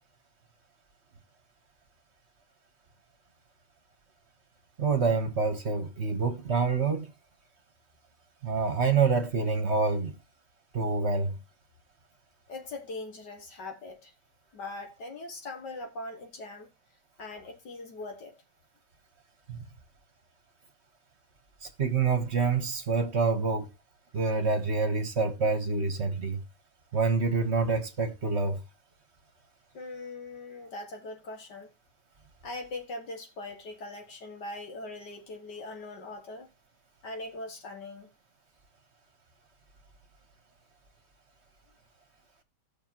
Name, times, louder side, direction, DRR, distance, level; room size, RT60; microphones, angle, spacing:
voice 1, 4.8-7.1 8.4-10.1 10.7-11.4 19.5-19.6 21.6-23.7 24.1-26.4 26.9-28.6, right 4 dB, 45° right, 1.4 m, -27 dB
voice 2, 12.5-14.1 14.5-16.7 17.2-18.3 29.7-31.7 32.4-36.5 37.0-38.1, left 2 dB, 85° left, 2.6 m, -41 dB
17.0 x 6.0 x 2.9 m
omnidirectional pair, 1.8 m